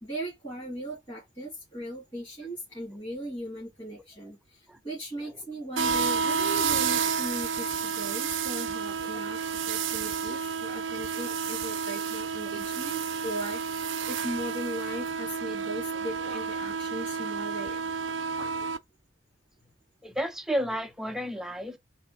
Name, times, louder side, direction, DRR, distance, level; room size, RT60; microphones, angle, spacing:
voice 1, 0.0-17.9, right 1 dB, 25° left, 2.5 m, -38 dB
voice 2, 5.1-5.5 11.1-11.3 18.4-18.7 20.0-21.8, equal, ahead, 0.5 m, -33 dB
sound 1, 5.8-18.8, right 6 dB, 75° right, 0.5 m, -30 dB
4.2 x 3.3 x 3.4 m
head